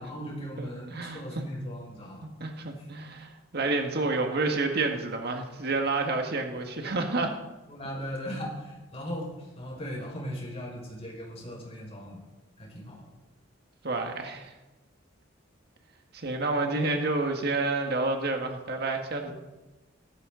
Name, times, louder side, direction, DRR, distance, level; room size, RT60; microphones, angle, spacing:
voice 1, 0.0-2.3 7.7-12.2 12.6-13.1 16.6-17.0 19.2-19.3, equal, 30° left, -2 dB, 5.2 m, -38 dB
voice 2, 0.6-1.2 2.4-7.4 13.8-14.5 16.1-19.3, right 3 dB, 55° right, 3 dB, 1.7 m, -29 dB
17.0 x 14.0 x 3.9 m, 1.1 s
head